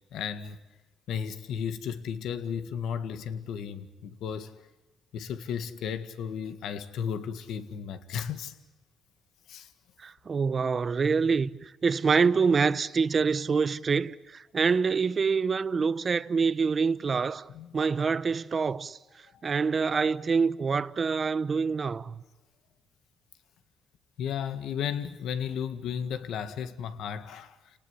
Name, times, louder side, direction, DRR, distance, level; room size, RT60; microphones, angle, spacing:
voice 1, 0.1-0.6 1.1-4.5 5.1-8.5 9.5-9.7 17.5-17.7 19.3-19.4 24.2-27.6, left 7 dB, 80° left, 1.8 m, -34 dB
voice 2, 10.0-19.0 19.4-22.2, right 5 dB, 40° right, 0.9 m, -26 dB
30.0 x 19.0 x 9.9 m
cardioid pair, 90°, 0 cm